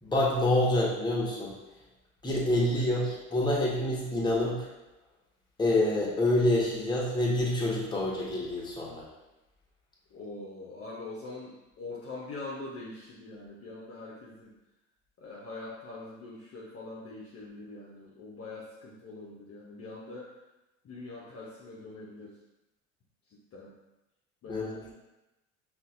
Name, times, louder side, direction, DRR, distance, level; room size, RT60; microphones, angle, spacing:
voice 1, 0.0-1.5 2.2-4.7 5.6-9.1 24.5-24.8, left 1 dB, 10° left, -5 dB, 1.1 m, -27 dB
voice 2, 2.4-3.0 10.1-14.5 15.2-20.3 20.8-22.3 23.3-23.8 24.4-24.9, left 2 dB, 35° left, -5 dB, 0.8 m, -43 dB
5.4 x 2.5 x 2.5 m, 0.99 s
hypercardioid pair, 75°, 42 cm